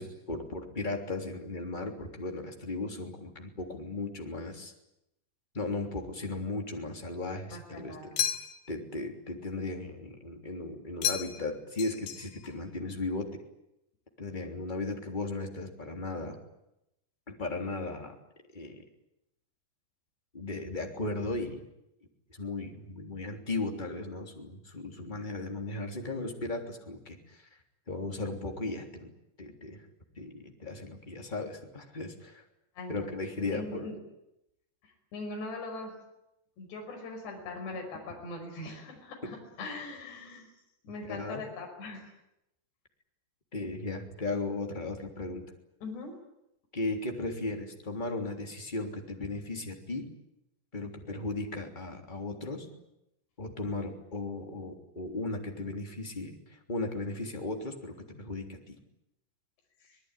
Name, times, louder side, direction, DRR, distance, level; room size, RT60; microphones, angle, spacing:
voice 1, 0.0-4.7 5.5-8.1 8.7-13.4 14.2-16.4 17.3-18.1 18.5-18.8 20.3-21.6 22.4-27.4 27.9-29.1 29.4-29.8 30.2-32.4 32.9-33.9 39.2-39.3 41.1-41.4 43.5-45.4 46.7-50.1 50.7-52.7 53.4-58.8, left 2 dB, 10° left, 3 dB, 2.8 m, -36 dB
voice 2, 7.5-8.2 32.8-33.1 33.5-34.0 34.8-36.0 36.6-40.5 40.8-42.0 45.8-46.1 52.7-52.8 59.8-60.0, left 2 dB, 70° left, 2 dB, 7.7 m, -41 dB
sound 1, 8.2-8.8 11.0-11.5 11.8-12.5, left 10 dB, 85° left, 4.2 m, -33 dB
25.5 x 20.0 x 9.9 m, 0.86 s
omnidirectional pair, 5.0 m